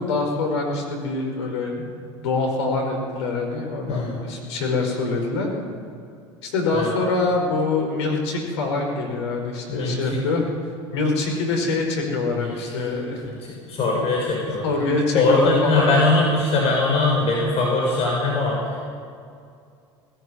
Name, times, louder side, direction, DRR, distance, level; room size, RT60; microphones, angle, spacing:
voice 1, 0.0-1.7 2.2-5.5 6.4-10.4 10.9-13.2 14.6-15.8, left 3 dB, 70° left, 2 dB, 5.0 m, -24 dB
voice 2, 3.9-4.2 6.7-6.9 9.7-9.9 12.4-12.9 13.2-14.7 15.1-18.8, left 3 dB, 45° left, -3 dB, 6.5 m, -21 dB
19.5 x 14.5 x 9.9 m, 2.4 s
figure-of-eight pair, 75°, 15 cm